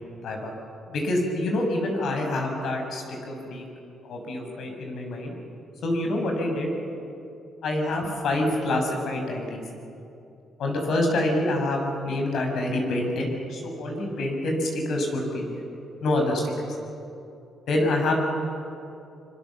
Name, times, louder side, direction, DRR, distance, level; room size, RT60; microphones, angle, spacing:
voice 1, 0.9-3.6 4.0-5.3 5.8-6.7 7.6-9.6 10.6-15.6 16.0-16.5 17.7-18.2, left 1 dB, 70° left, 2 dB, 5.9 m, -26 dB
25.0 x 24.0 x 7.4 m, 2.7 s
cardioid pair, 90°, 0 cm